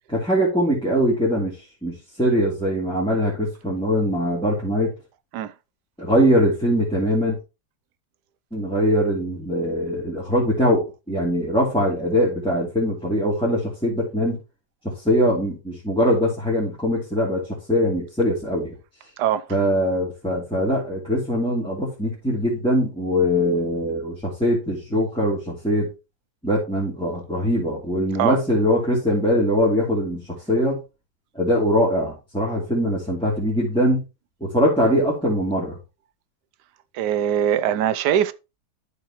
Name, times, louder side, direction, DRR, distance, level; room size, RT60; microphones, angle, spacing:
voice 1, 0.1-1.5 1.8-4.9 6.0-7.4 8.5-14.4 14.8-18.7 19.5-25.9 26.4-30.8 31.3-34.0 34.4-35.8, equal, 5° left, 2.8 m, -22 dB
voice 2, 36.9-38.3, right 10 dB, 85° right, 1.2 m, -21 dB
13.0 x 5.0 x 3.0 m
omnidirectional pair, 1.7 m